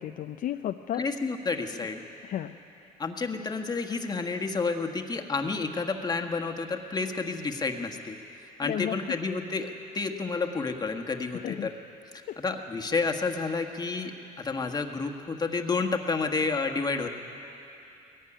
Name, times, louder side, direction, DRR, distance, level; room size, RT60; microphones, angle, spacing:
voice 1, 0.0-1.1 2.2-2.9 8.6-9.1 11.3-11.7 12.3-12.4, left 11 dB, 55° left, 8 dB, 0.5 m, -34 dB
voice 2, 1.0-2.0 3.0-8.2 8.6-11.7 12.4-17.1, left 4 dB, 25° left, 4 dB, 1.5 m, -30 dB
20.0 x 14.5 x 10.0 m, 2.8 s
cardioid pair, 110°, 17 cm